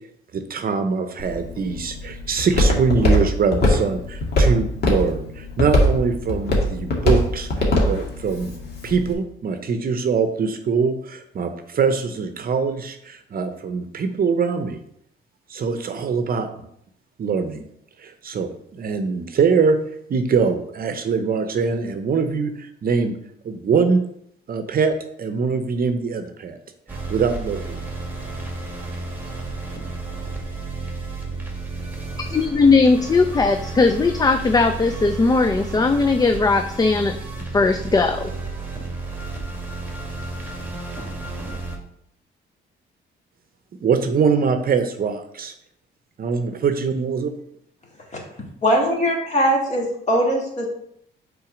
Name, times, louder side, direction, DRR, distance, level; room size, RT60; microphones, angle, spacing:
voice 1, 0.3-8.6 8.8-14.8 15.5-16.5 17.2-17.7 18.0-19.8 20.1-23.1 23.4-24.0 24.5-26.6 26.9-27.8 43.8-45.5 46.2-47.3, right 5 dB, 50° right, 8 dB, 0.7 m, -23 dB
Walk footsteps, 1.2-9.1, left 1 dB, 55° left, 1.8 m, -22 dB
sound 1, 26.9-41.8, right 3 dB, 10° right, 1.6 m, -32 dB
voice 2, 32.3-37.2 37.5-38.3, left 4 dB, 20° left, 7 dB, 0.4 m, -18 dB
voice 3, 48.6-50.7, equal, 35° left, -1 dB, 2.1 m, -20 dB
5.8 x 3.8 x 5.0 m, 0.71 s
cardioid pair, 90°, 20 cm